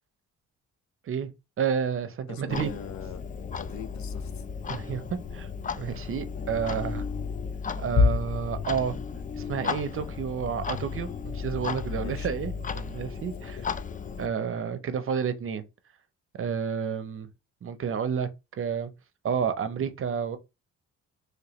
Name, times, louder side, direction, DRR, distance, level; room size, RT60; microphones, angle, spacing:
voice 1, 1.6-2.7 4.7-5.0 5.3-5.5 5.7-7.0 7.7-9.0 9.4-13.6 14.2-15.7 16.4-17.3 17.6-18.9 19.2-20.4, right 7 dB, 45° right, 0.7 m, -30 dB
voice 2, 2.3-3.2 3.5-4.4 11.9-12.4 13.4-13.7, left 7 dB, 65° left, 0.8 m, -42 dB
Clock, 2.5-14.3, left 5 dB, 25° left, 0.4 m, -32 dB
3.1 x 3.0 x 2.9 m
cardioid pair, 90°, 30 cm